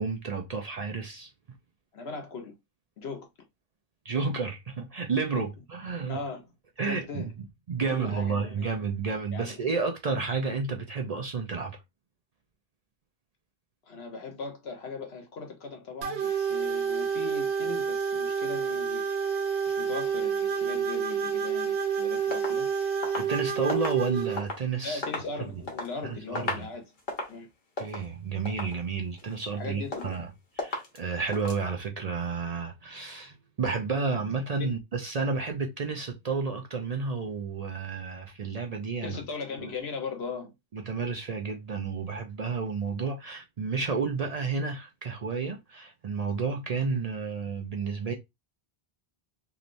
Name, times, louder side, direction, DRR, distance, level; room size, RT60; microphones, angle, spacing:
voice 1, 0.0-1.3 4.0-6.2 6.8-7.3 7.7-11.8 23.2-25.0 26.0-26.7 27.8-30.3 30.6-39.2 39.6-39.7 40.7-48.1, right 4 dB, 50° right, 0.5 m, -31 dB
voice 2, 1.9-2.5 3.0-3.3 6.1-6.5 6.9-7.3 7.9-8.7 9.3-9.6 13.8-19.0 19.7-22.7 24.8-26.9 27.3-27.5 29.5-30.2 34.6-34.7 39.0-40.5, left 4 dB, 75° left, 1.2 m, -39 dB
sound 1, 16.0-24.4, right 6 dB, 80° right, 1.1 m, -29 dB
sound 2, 22.3-24.7 25.0-25.9 26.2-26.7 27.0-27.4 27.8-28.1 28.4-28.8 29.2-29.6 29.9-30.3 30.6-31.0 31.3-31.6, left 2 dB, 55° left, 1.1 m, -36 dB
3.1 x 2.9 x 2.5 m
omnidirectional pair, 1.0 m